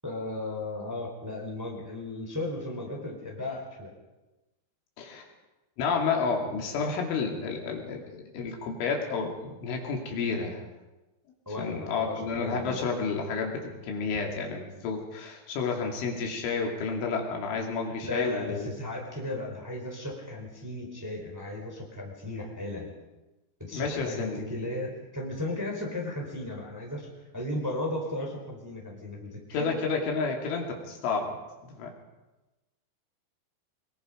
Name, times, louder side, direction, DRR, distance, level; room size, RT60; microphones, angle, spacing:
voice 1, 0.0-3.9 11.5-12.8 18.0-22.9 23.6-29.7, left 1 dB, 5° right, -1 dB, 3.5 m, -35 dB
voice 2, 5.8-10.6 11.6-18.7 23.7-24.6 29.5-31.4 31.7-31.9, left 5 dB, 85° left, 1 dB, 5.2 m, -30 dB
23.5 x 21.5 x 5.2 m, 1.1 s
omnidirectional pair, 5.4 m